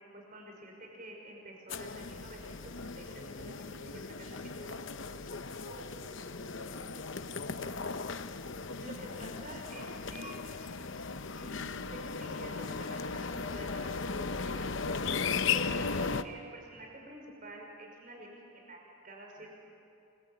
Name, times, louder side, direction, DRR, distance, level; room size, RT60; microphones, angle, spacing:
voice 1, 0.0-3.5 3.8-4.8 8.8-10.6 11.3-11.7 12.0-14.7 15.5-19.5, right 1 dB, 40° right, 0 dB, 5.5 m, -49 dB
sound 1, 1.7-16.2, left 5 dB, 60° left, 0.9 m, -37 dB
voice 2, 5.4-7.4 19.3-19.5, right 1 dB, 85° right, 2 dB, 4.6 m, -54 dB
28.5 x 22.5 x 8.9 m, 2.7 s
head